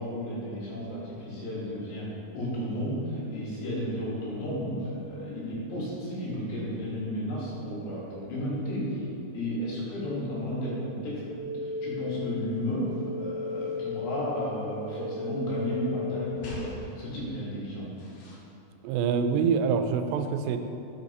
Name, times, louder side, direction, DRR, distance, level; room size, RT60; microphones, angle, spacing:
voice 1, 0.0-9.0 9.3-11.2 11.5-17.9, equal, 80° left, -6 dB, 4.0 m, -33 dB
sound 1, 11.4-16.8, left 4 dB, 55° right, 1.7 m, -35 dB
sound 2, 11.6-18.4, left 1 dB, 65° left, 2.2 m, -49 dB
voice 2, 18.8-20.6, right 6 dB, 85° right, 7 dB, 2.7 m, -25 dB
7.3 x 6.8 x 4.2 m, 2.7 s
omnidirectional pair, 4.8 m